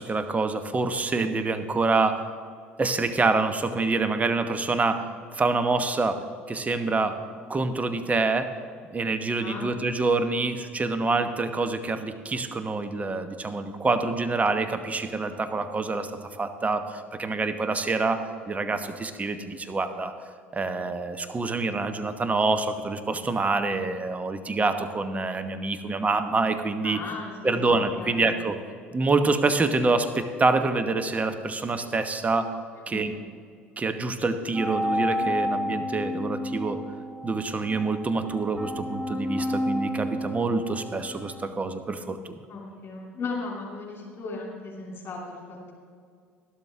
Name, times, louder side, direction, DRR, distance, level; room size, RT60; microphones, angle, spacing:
voice 1, 0.0-2.3 2.8-5.1 5.3-7.2 7.5-8.5 8.9-16.1 16.4-20.1 20.5-27.0 27.4-28.6 28.9-32.5 32.9-33.1 33.8-36.8 37.2-42.4, right 3 dB, 25° right, 9 dB, 1.1 m, -26 dB
voice 2, 9.4-9.7 26.8-28.2 32.9-33.2 42.5-45.7, left 3 dB, 40° left, -3 dB, 3.0 m, -37 dB
sound 1, 34.5-41.5, left 1 dB, ahead, 1.7 m, -31 dB
12.5 x 12.0 x 3.6 m, 2.1 s
hypercardioid pair, 65°, 6 cm